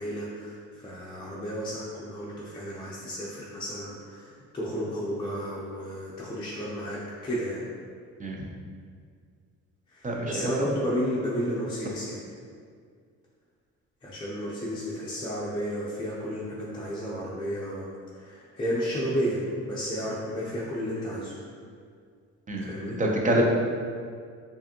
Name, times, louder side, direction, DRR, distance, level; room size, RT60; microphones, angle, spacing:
voice 1, 0.0-7.6 9.9-12.2 14.0-17.8 18.1-21.3 22.6-23.0, equal, 15° left, -7 dB, 0.6 m, -32 dB
voice 2, 10.0-10.4 22.5-22.7 23.0-23.4, right 1 dB, 25° right, -1 dB, 0.6 m, -25 dB
4.7 x 2.6 x 2.8 m, 2.1 s
cardioid pair, 90°, 30 cm